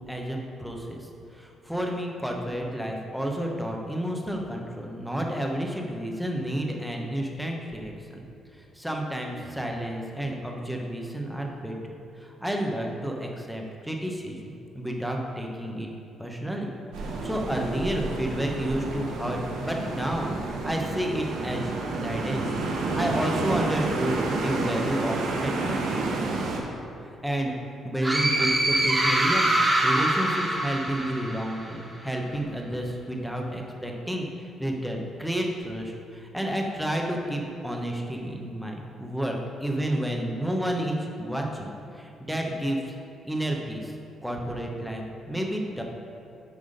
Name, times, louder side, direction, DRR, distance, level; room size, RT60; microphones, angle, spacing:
voice 1, 0.1-1.0 1.3-8.2 8.7-11.7 12.2-14.4 14.7-15.9 16.2-16.7 17.0-21.6 21.9-22.5 22.9-26.1 27.2-27.5 27.8-29.5 29.8-41.7 41.9-42.9 43.2-43.9 44.2-45.8, right 1 dB, ahead, 0 dB, 1.1 m, -30 dB
sound 1, 16.9-26.6, right 3 dB, 90° right, 1.0 m, -30 dB
sound 2, 28.0-31.7, right 1 dB, 20° right, 1.3 m, -24 dB
9.7 x 3.6 x 5.2 m, 2.6 s
cardioid pair, 90°, 0 cm